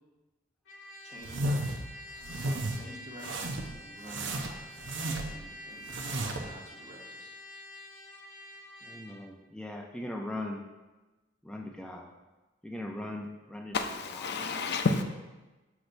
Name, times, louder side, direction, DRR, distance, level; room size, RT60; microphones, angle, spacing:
Trumpet, 0.7-9.2, left 1 dB, 80° left, 1.2 m, -47 dB
voice 1, 1.0-1.8 2.7-4.7 5.2-7.4, right 1 dB, 40° right, -1 dB, 1.1 m, -49 dB
sound 1, 1.2-1.8 2.2-2.8 3.2-3.7 4.1-5.4 5.8-6.5, right 1 dB, 80° right, 0.7 m, -33 dB
voice 2, 8.8-10.6 11.4-12.1 12.6-13.8 14.1-14.4, left 1 dB, 5° left, 0 dB, 0.4 m, -39 dB
voice 3, 13.7-15.0, left 3 dB, 60° left, 6 dB, 0.5 m, -30 dB
6.5 x 6.0 x 2.6 m, 1.2 s
head